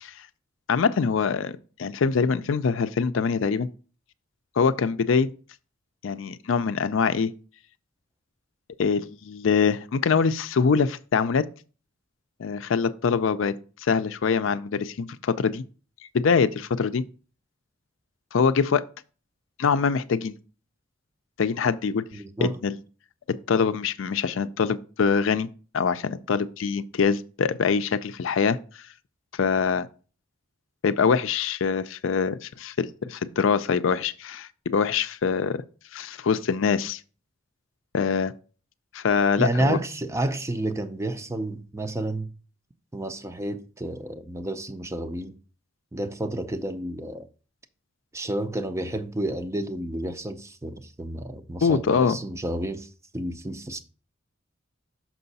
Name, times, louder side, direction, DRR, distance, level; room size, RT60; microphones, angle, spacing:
voice 1, 0.7-1.5 1.8-3.7 4.6-5.3 6.0-7.3 8.8-11.5 12.4-13.6 13.8-15.6 16.1-17.0 18.3-18.8 19.6-20.3 21.4-22.0 22.4-22.8 23.3-25.5 25.7-28.6 29.3-29.9 30.8-35.6 35.9-37.0 37.9-38.3 38.9-39.8 51.6-52.2, left 5 dB, 70° left, 0.4 m, -24 dB
voice 2, 22.1-22.6 39.4-42.3 42.9-45.3 45.9-47.3 48.1-53.8, right 1 dB, 15° right, 0.5 m, -30 dB
6.0 x 5.6 x 4.0 m
head